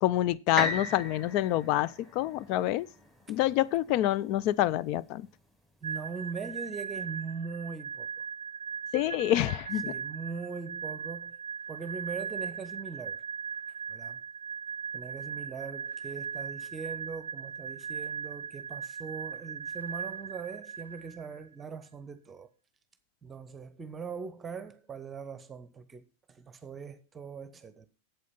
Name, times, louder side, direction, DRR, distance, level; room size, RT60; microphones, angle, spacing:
voice 1, 0.0-2.9 3.3-5.3 8.9-9.8, left 14 dB, 45° left, 0.4 m, -27 dB
sound 1, 0.6-4.5 5.1-5.2, left 2 dB, 10° left, 2.2 m, -37 dB
voice 2, 5.8-8.1 9.8-11.4 11.7-13.2 13.9-14.2 14.9-22.5 23.2-27.9, right 5 dB, 20° right, 1.0 m, -41 dB
sound 2, 5.8-21.4, right 6 dB, 70° right, 0.4 m, -39 dB
8.3 x 7.9 x 5.4 m
figure-of-eight pair, 90°, 0 cm